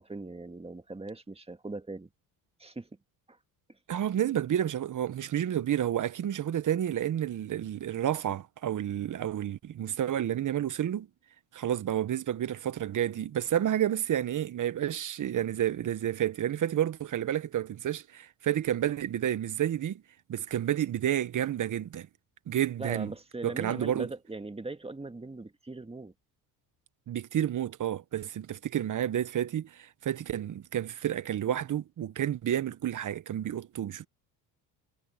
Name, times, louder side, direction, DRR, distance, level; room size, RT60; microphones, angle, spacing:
voice 1, 0.0-2.1 2.6-2.9 3.3-3.4 22.8-26.1, right 2 dB, 15° right, 2.0 m, -40 dB
voice 2, 3.9-11.1 11.5-20.0 20.3-22.1 22.5-23.1 23.4-24.1 27.1-34.1, right 11 dB, 45° right, 1.2 m, -30 dB
supercardioid pair, 80°, 42 cm